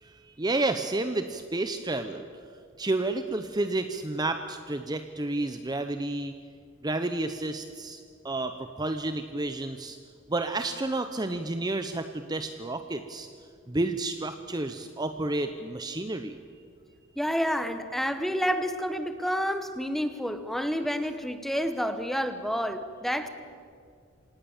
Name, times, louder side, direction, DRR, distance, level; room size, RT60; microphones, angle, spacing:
voice 1, 0.0-2.2 2.8-6.3 6.8-10.0 10.3-13.3 13.7-16.4, right 2 dB, 20° right, 8 dB, 0.7 m, -30 dB
voice 2, 17.2-23.3, equal, ahead, 9 dB, 1.1 m, -29 dB
26.5 x 18.0 x 7.2 m, 2.2 s
head